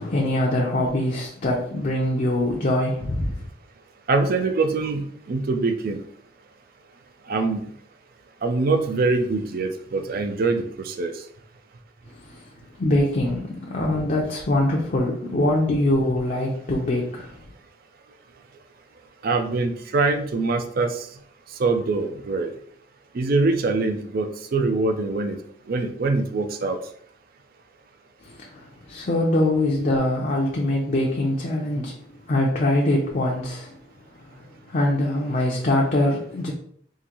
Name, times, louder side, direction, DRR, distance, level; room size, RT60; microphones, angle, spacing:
voice 1, 0.0-3.4 12.1-12.5 12.8-17.4 28.2-32.0 32.3-33.8 34.1-36.5, left 1 dB, 45° left, 0.5 m, -23 dB
voice 2, 4.1-6.0 7.3-7.7 8.4-11.1 19.2-21.1 21.6-22.5 23.1-25.4 25.7-26.8, right 3 dB, 55° right, 0.4 m, -23 dB
3.7 x 2.6 x 2.9 m
head